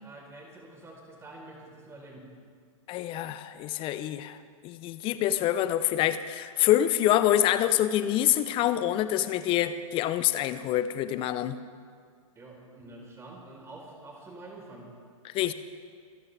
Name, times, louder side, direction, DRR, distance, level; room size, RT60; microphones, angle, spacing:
voice 1, 0.0-2.3 12.4-14.9, right 2 dB, 15° right, -1 dB, 4.2 m, -47 dB
voice 2, 2.9-4.4 4.6-11.6 15.2-15.5, left 12 dB, 30° left, 13 dB, 0.8 m, -26 dB
26.5 x 13.5 x 3.5 m, 2.1 s
figure-of-eight pair, 110°, 18 cm